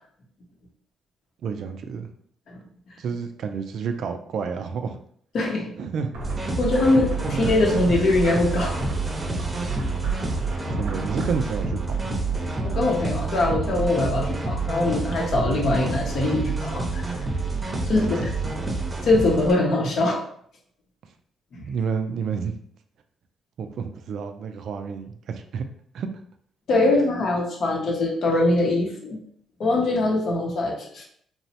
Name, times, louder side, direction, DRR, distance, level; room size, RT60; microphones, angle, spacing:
voice 1, 1.4-2.1 3.0-5.0 5.8-6.1 7.2-7.5 10.4-10.5 10.8-11.9 18.0-18.1 18.4-18.5 21.7-22.5 23.6-25.7 25.9-26.1, right 6 dB, 70° right, 7 dB, 0.3 m, -30 dB
voice 2, 5.3-5.7 6.6-8.7 12.7-17.0 17.9-18.3 19.0-20.2 21.5-21.6 26.7-29.2 29.6-31.0, left 2 dB, 65° left, -1 dB, 0.6 m, -22 dB
sound 1, 6.1-11.3, right 2 dB, 90° right, 0.8 m, -36 dB
sound 2, 6.2-19.5, right 3 dB, 25° right, 0.6 m, -28 dB
2.9 x 2.0 x 2.8 m, 0.63 s
cardioid pair, 90°, 0 cm